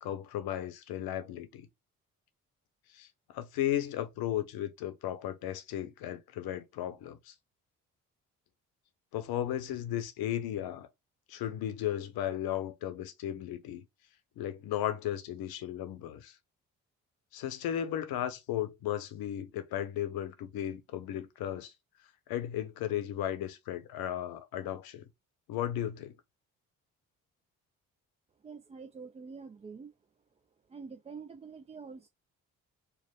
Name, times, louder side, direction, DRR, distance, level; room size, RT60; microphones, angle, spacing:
voice 1, 0.0-1.7 2.9-7.3 9.1-10.9 11.3-13.8 14.4-16.4 17.3-21.7 22.3-25.1 25.5-26.2, left 11 dB, 60° left, 0.8 m, -35 dB
voice 2, 28.4-29.9 30.7-32.1, right 5 dB, 15° right, 0.4 m, -46 dB
4.6 x 2.1 x 3.6 m
hypercardioid pair, 45°, 42 cm